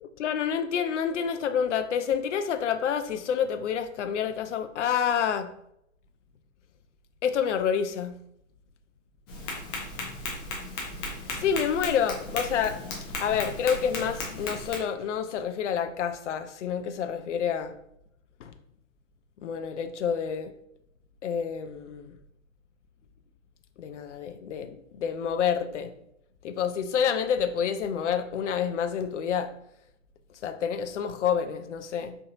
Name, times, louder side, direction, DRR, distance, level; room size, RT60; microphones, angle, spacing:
voice 1, 0.0-5.5 7.2-8.2 11.3-12.8 13.2-17.7 18.4-18.5 19.4-20.5 21.2-22.1 23.8-25.9 26.4-29.5 30.4-32.2, left 7 dB, 60° left, 0.5 m, -28 dB
Tap, 9.3-14.8, left 2 dB, 20° left, 0.6 m, -36 dB
4.4 x 2.7 x 2.5 m
figure-of-eight pair, 125°, 40 cm